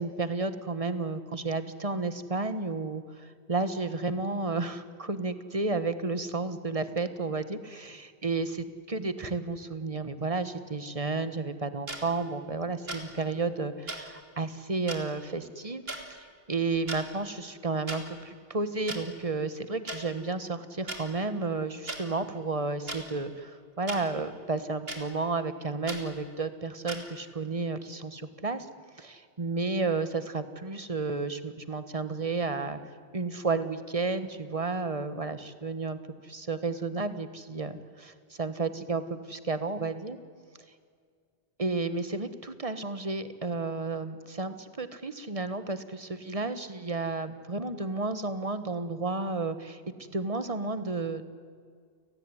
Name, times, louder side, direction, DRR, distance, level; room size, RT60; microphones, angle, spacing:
voice 1, 0.0-15.8 16.1-28.7 29.0-32.8 33.1-40.2 41.6-51.3, right 3 dB, 35° right, 11 dB, 1.4 m, -32 dB
sound 1, 11.9-12.0 12.9-13.0 13.9-14.0 14.9-15.0 15.9-16.0 16.7-17.0 17.9-18.0 18.9-19.0 19.9-20.0 20.9-21.0 21.9-22.0 22.9-23.0 23.9-24.0 24.9-25.0 25.9-26.0 26.9-27.0, right 2 dB, 65° right, 3.1 m, -36 dB
30.0 x 18.5 x 9.8 m, 2.1 s
omnidirectional pair, 1.1 m